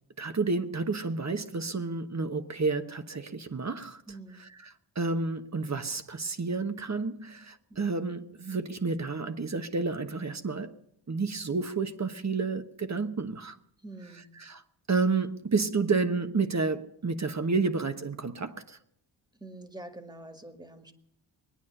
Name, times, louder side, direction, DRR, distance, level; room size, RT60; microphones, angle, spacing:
voice 1, 0.2-4.0 4.9-10.8 11.1-13.6 14.4-14.6 14.9-18.8, right 4 dB, 35° right, 1.2 m, -30 dB
voice 2, 4.1-4.4 7.7-7.8 13.8-14.3 19.3-20.9, right 2 dB, 10° right, 1.9 m, -45 dB
22.0 x 9.4 x 6.6 m
cardioid pair, 65°, 47 cm